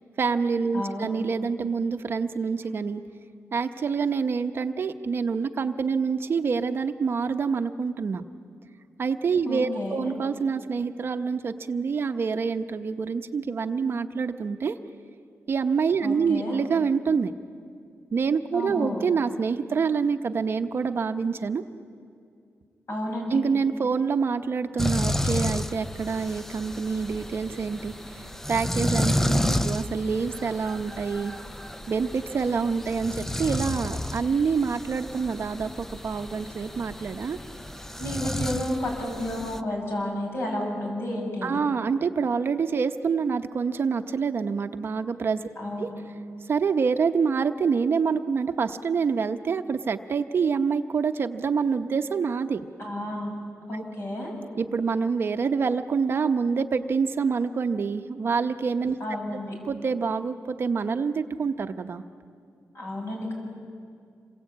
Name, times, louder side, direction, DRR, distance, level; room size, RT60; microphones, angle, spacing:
voice 1, 0.2-3.0 3.5-8.2 9.0-14.8 15.5-17.3 18.1-21.6 23.3-27.9 28.5-29.1 29.6-31.3 31.9-37.4 41.4-45.4 45.8-45.9 46.5-52.7 53.7-53.8 54.6-59.0 59.7-62.0, right 5 dB, 50° right, 8 dB, 0.9 m, -26 dB
voice 2, 0.7-1.1 9.4-10.1 16.0-16.6 18.5-19.0 22.9-23.4 29.2-29.6 38.0-41.6 45.6-46.0 52.8-53.3 53.7-54.3 59.0-59.5 62.7-63.3, left 1 dB, 55° left, 0 dB, 7.7 m, -31 dB
sound 1, 24.8-39.6, left 1 dB, 5° left, 0.6 m, -31 dB
27.5 x 21.5 x 8.6 m, 2.3 s
wide cardioid pair, 120°, 5 cm